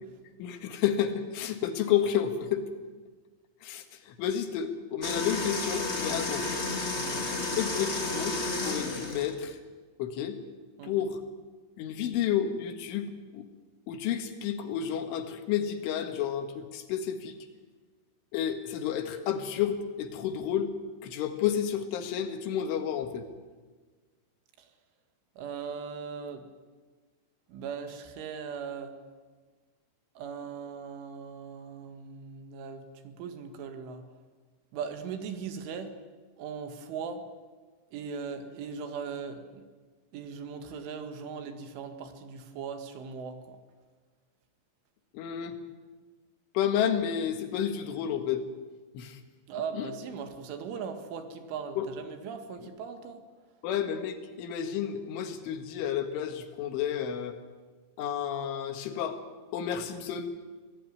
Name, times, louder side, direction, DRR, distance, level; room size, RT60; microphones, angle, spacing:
voice 1, 0.4-2.7 3.6-6.5 7.6-9.6 10.0-10.4 10.8-11.2 11.8-13.5 13.9-17.4 18.3-20.7 21.0-23.3 45.1-45.6 46.6-48.5 48.9-49.2 49.7-49.9 51.8-51.9 53.6-57.3 58.0-59.2 59.5-60.3, left 9 dB, 90° left, 7 dB, 4.2 m, -31 dB
sound 1, 5.0-9.3, left 2 dB, 35° left, 1.0 m, -32 dB
voice 2, 6.9-7.2 10.8-11.1 24.6-24.7 25.4-26.4 27.5-28.9 30.2-34.0 34.7-35.9 36.4-37.2 37.9-39.6 40.1-43.6 49.5-53.2, right 6 dB, 85° right, 7 dB, 4.4 m, -39 dB
25.0 x 17.5 x 9.7 m, 1.4 s
omnidirectional pair, 5.4 m